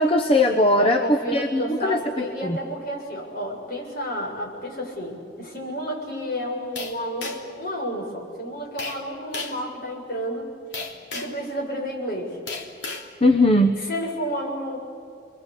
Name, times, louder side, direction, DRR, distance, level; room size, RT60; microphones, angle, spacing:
voice 1, 0.0-2.0 2.4-2.6 13.2-13.8, left 1 dB, 30° left, 5 dB, 1.1 m, -19 dB
voice 2, 0.8-10.5 11.1-12.4 13.8-14.8, equal, 55° left, -1 dB, 7.5 m, -31 dB
sound 1, 6.8-7.6 8.8-9.0 9.3-9.6 10.7-11.4 12.5-13.1, left 3 dB, 80° left, 3.1 m, -33 dB
29.5 x 22.5 x 8.6 m, 2.5 s
head